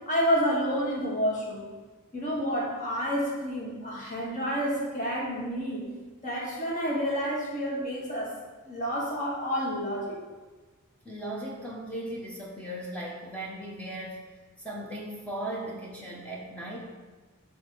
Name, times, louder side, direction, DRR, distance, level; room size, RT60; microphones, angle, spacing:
voice 1, 0.1-1.6 2.1-5.9 6.2-8.3 8.6-10.2, equal, 35° left, -4 dB, 1.5 m, -29 dB
voice 2, 11.0-14.3 14.6-16.8, right 1 dB, 5° left, -3 dB, 0.7 m, -37 dB
6.9 x 3.3 x 4.4 m, 1.3 s
head